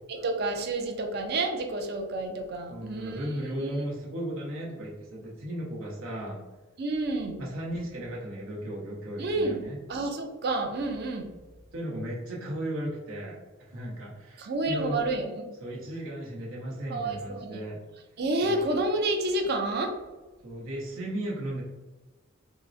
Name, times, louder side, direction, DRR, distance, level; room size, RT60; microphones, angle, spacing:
voice 1, 0.1-3.9 6.8-7.4 9.2-9.6 9.9-11.3 14.4-15.5 16.9-17.6 18.2-20.0, right 2 dB, 50° right, 4 dB, 0.4 m, -29 dB
voice 2, 2.7-6.4 7.4-9.8 11.7-15.0 15.6-17.8 18.4-18.7 20.4-21.6, right 1 dB, 85° right, -4 dB, 0.9 m, -36 dB
3.6 x 2.0 x 2.6 m, 1.2 s
head